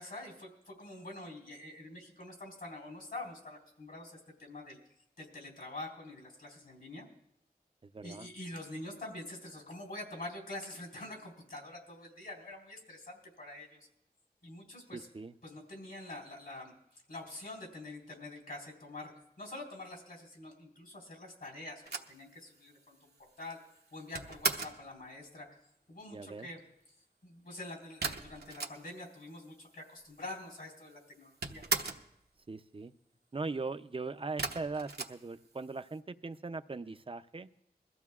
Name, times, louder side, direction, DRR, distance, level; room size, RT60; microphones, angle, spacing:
voice 1, 0.0-4.8 5.2-7.1 8.0-13.9 14.4-15.1 15.4-19.1 19.4-23.1 23.4-23.6 23.9-25.5 25.9-26.6 27.2-31.7, left 2 dB, 70° left, 0 dB, 4.0 m, -46 dB
voice 2, 7.8-8.3 14.9-15.3 26.1-26.5 32.5-32.9 33.3-37.5, right 3 dB, 35° right, 10 dB, 0.5 m, -40 dB
sound 1, 21.8-24.9 28.0-29.2 29.5-29.6 29.7-30.5 30.8-32.1 34.4-35.9, right 3 dB, 80° right, 1.0 m, -37 dB
22.0 x 14.0 x 2.4 m, 0.77 s
wide cardioid pair, 65°, 16 cm